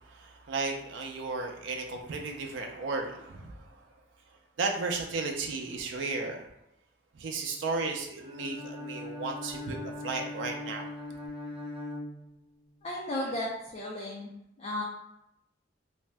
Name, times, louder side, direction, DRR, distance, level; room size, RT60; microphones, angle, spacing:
voice 1, 0.0-3.8 4.6-6.4 7.1-10.9, right 3 dB, 80° right, 2 dB, 0.4 m, -34 dB
Bowed string instrument, 8.2-12.8, left 2 dB, 25° right, 1.0 m, -40 dB
voice 2, 12.8-14.3 14.6-14.8, left 1 dB, 35° left, -3 dB, 0.4 m, -34 dB
2.5 x 2.1 x 3.2 m, 0.82 s
head